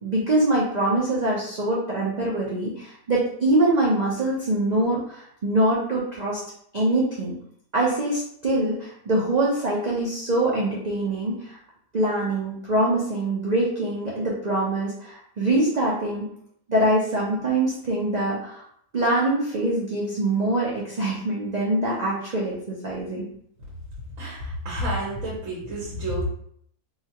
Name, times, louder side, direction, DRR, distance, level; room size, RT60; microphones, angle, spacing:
voice 1, 0.0-6.4 6.7-7.3 7.7-11.6 11.9-16.2 16.7-18.6 18.9-23.3, right 1 dB, 80° right, -6 dB, 0.3 m, -24 dB
voice 2, 24.2-26.2, equal, 55° right, -5 dB, 1.2 m, -29 dB
4.0 x 2.4 x 2.9 m, 0.66 s
omnidirectional pair, 1.8 m